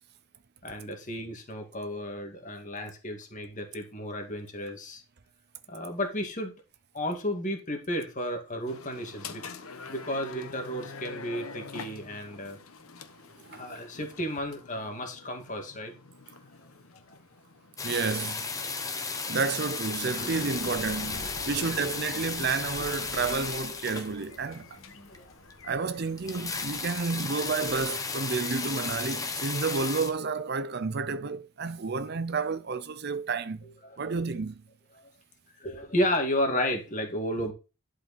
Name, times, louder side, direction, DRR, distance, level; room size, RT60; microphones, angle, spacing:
voice 1, 0.6-5.0 5.7-6.5 6.9-9.4 9.9-12.6 13.5-15.9 20.2-21.9 24.9-25.3 33.8-34.1 34.9-35.1 35.6-37.5, equal, 35° left, 2.1 m, -33 dB
sound 1, 8.7-18.1, left 5 dB, 85° left, 1.1 m, -45 dB
sound 2, 17.8-24.6 25.1-25.2 25.5-25.6 25.8-25.9 26.1-30.1, left 4 dB, 15° left, 1.0 m, -34 dB
voice 2, 17.8-18.5 19.3-24.8 25.6-33.6 34.0-34.6, right 4 dB, 50° right, 0.6 m, -31 dB
Bird, 19.8-28.1, left 2 dB, 70° left, 1.3 m, -48 dB
11.5 x 5.0 x 4.2 m
head